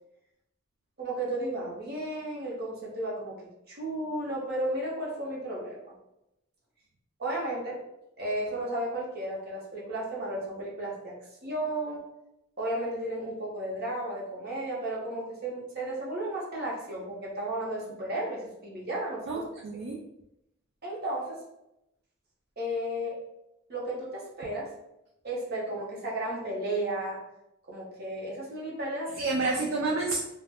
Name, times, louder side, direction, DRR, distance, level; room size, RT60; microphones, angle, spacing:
voice 1, 1.0-3.4 3.7-5.9 7.2-7.8 8.2-11.1 11.4-12.0 12.6-19.4 20.8-21.4 22.6-23.2 23.7-24.7 25.2-27.2 27.7-29.4, right 1 dB, 50° right, -3 dB, 0.8 m, -33 dB
voice 2, 19.3-20.0 29.2-30.2, right 3 dB, 80° right, -2 dB, 0.4 m, -29 dB
2.4 x 2.1 x 3.4 m, 0.85 s
head